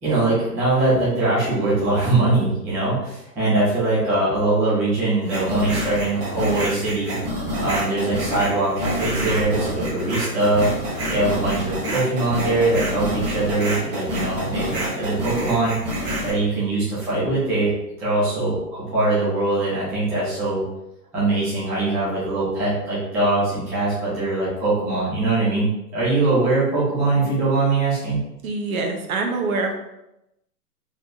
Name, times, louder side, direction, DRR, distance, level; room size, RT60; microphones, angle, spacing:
voice 1, 0.0-7.2 7.6-15.8 16.2-17.7 18.0-20.6 21.1-28.2, right 2 dB, 5° right, -11 dB, 0.4 m, -22 dB
sound 1, 5.2-16.3, equal, 20° right, 1.0 m, -27 dB
voice 2, 28.4-29.8, right 3 dB, 60° right, 3 dB, 0.9 m, -25 dB
3.8 x 3.3 x 2.8 m, 0.86 s
hypercardioid pair, 135°, 49 cm